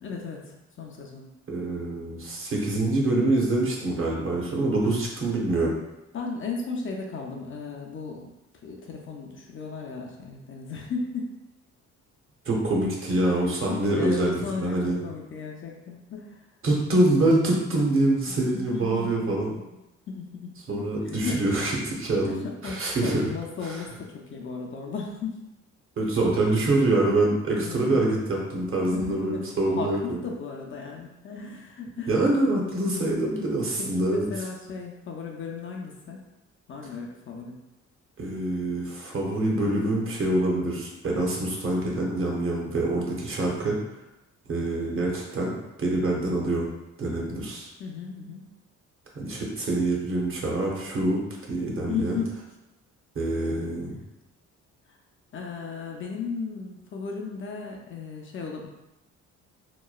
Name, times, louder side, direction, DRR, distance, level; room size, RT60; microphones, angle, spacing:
voice 1, 0.0-1.3 6.1-8.3 8.6-11.3 13.1-13.2 13.4-16.4 18.5-19.6 20.1-21.4 22.2-25.4 26.0-26.1 27.5-28.0 28.9-32.1 33.8-36.3 36.7-37.6 47.8-48.5 51.9-52.4 55.3-58.7, left 4 dB, 45° left, 0 dB, 0.5 m, -35 dB
voice 2, 1.5-5.8 12.5-15.0 16.6-19.5 20.7-22.4 22.6-23.2 26.0-30.2 32.1-34.3 38.2-43.8 44.5-46.6 47.0-47.7 49.1-51.2 51.5-52.2 53.1-54.0, right 2 dB, 45° right, -2 dB, 0.8 m, -25 dB
2.9 x 2.2 x 2.3 m, 0.94 s
cardioid pair, 90°, 30 cm